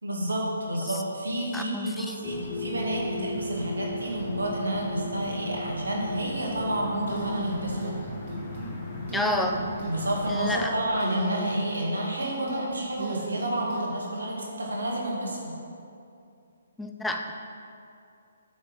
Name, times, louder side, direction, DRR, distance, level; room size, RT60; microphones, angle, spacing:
voice 1, 0.0-8.0 9.8-15.5, right 1 dB, 85° right, -2 dB, 1.7 m, -30 dB
voice 2, 1.5-2.2 9.1-9.6 10.3-10.7 16.8-17.3, left 1 dB, 5° left, 4 dB, 0.4 m, -30 dB
sound 1, 2.2-10.7, left 1 dB, 25° left, 1.4 m, -36 dB
sound 2, 7.1-8.0 8.3-8.7 9.1-9.9 11.0-11.9 12.2-13.9, right 4 dB, 50° right, 1.5 m, -36 dB
8.2 x 3.4 x 6.1 m, 2.6 s
figure-of-eight pair, 140°, 0 cm